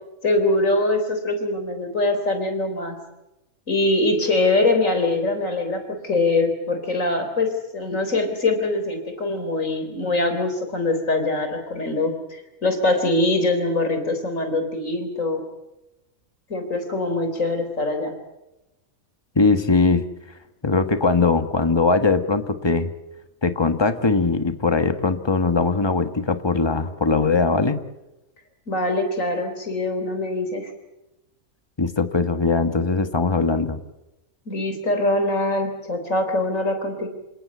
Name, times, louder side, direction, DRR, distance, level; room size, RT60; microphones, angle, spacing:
voice 1, 0.2-3.0 3.7-15.4 16.5-18.1 28.7-30.7 34.5-37.1, left 2 dB, 65° left, 7 dB, 4.1 m, -23 dB
voice 2, 19.3-20.0 20.6-22.9 23.4-27.8 31.8-33.8, left 3 dB, 20° left, 10 dB, 1.3 m, -20 dB
28.0 x 18.0 x 8.4 m, 0.96 s
omnidirectional pair, 1.5 m